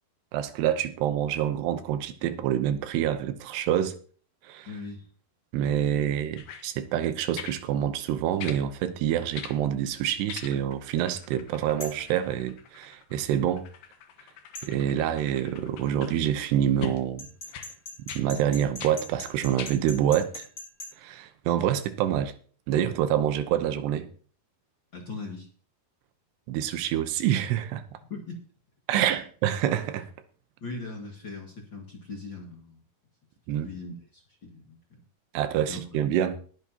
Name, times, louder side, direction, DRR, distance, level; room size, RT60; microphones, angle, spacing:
voice 1, 0.3-4.0 4.4-4.7 5.5-13.7 14.6-17.3 18.2-20.5 21.0-22.3 22.7-24.1 26.5-27.8 28.9-30.1 33.5-33.7 35.3-36.4, right 10 dB, 85° right, 3.0 m, -27 dB
voice 2, 4.7-5.1 24.9-25.5 28.1-28.4 28.9-29.2 30.6-32.8 33.6-35.0 35.7-35.8, left 3 dB, 40° left, 1.9 m, -40 dB
sound 1, 6.4-6.7 7.4-7.6 8.4-8.6 9.3-9.6 10.3-10.8 11.1-16.2 16.8-17.0 17.5-17.7 18.1-18.3 18.8-19.0 19.6-19.8 20.4-20.5, left 8 dB, 75° left, 3.2 m, -41 dB
sound 2, 11.8-12.1 14.6-14.7 17.2-20.9, left 1 dB, 20° left, 8.1 m, -40 dB
20.5 x 9.1 x 2.9 m
omnidirectional pair, 4.7 m